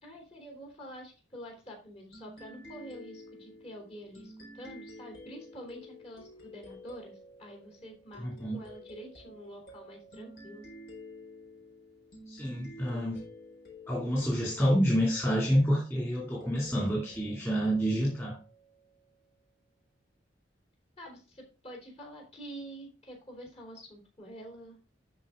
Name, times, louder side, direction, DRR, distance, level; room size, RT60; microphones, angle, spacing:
voice 1, 0.0-8.3 8.5-10.6 21.0-24.8, equal, 35° left, 1 dB, 3.6 m, -47 dB
sound 1, 2.1-19.3, left 1 dB, 60° left, 4.4 m, -51 dB
voice 2, 8.2-8.6 12.3-13.2 13.9-18.4, equal, 15° left, -4 dB, 2.7 m, -28 dB
12.0 x 4.8 x 3.8 m, 0.36 s
head